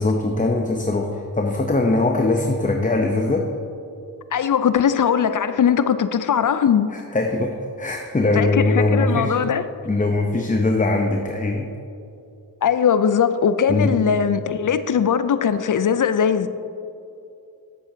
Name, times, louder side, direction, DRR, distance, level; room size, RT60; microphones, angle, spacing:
voice 1, 0.0-3.5 6.9-9.4 9.8-11.7 13.7-14.0, left 2 dB, 20° left, 2 dB, 0.7 m, -21 dB
voice 2, 4.3-6.9 8.4-9.7 12.6-16.5, left 7 dB, 55° left, 12 dB, 0.5 m, -20 dB
10.0 x 8.1 x 2.7 m, 2.7 s
cardioid pair, 40°, 39 cm